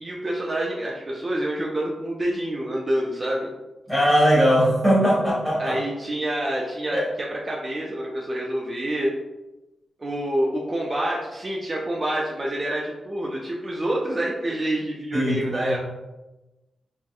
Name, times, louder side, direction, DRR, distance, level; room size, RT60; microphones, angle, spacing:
voice 1, 0.0-3.5 5.6-9.1 10.0-15.8, right 1 dB, 25° right, -3 dB, 0.3 m, -27 dB
voice 2, 3.9-5.8 6.9-7.0 15.1-15.8, equal, 15° left, -5 dB, 1.0 m, -20 dB
3.0 x 2.6 x 2.3 m, 1.0 s
wide cardioid pair, 125°, 0 cm